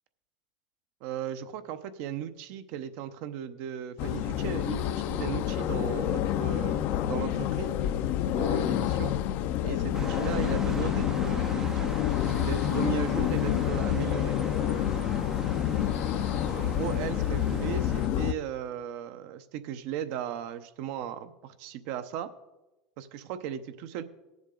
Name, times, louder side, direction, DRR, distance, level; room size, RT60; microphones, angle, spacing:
voice 1, 1.0-7.8 8.3-9.1 9.6-11.9 12.4-14.4 16.5-22.3 23.0-24.0, right 9 dB, 65° right, 11 dB, 0.8 m, -36 dB
sound 1, 4.0-18.3, left 11 dB, 55° left, 0.6 m, -28 dB
sound 2, 9.9-18.1, right 3 dB, 15° right, 0.4 m, -40 dB
18.5 x 7.2 x 3.8 m, 1.1 s
supercardioid pair, 115°, 4 cm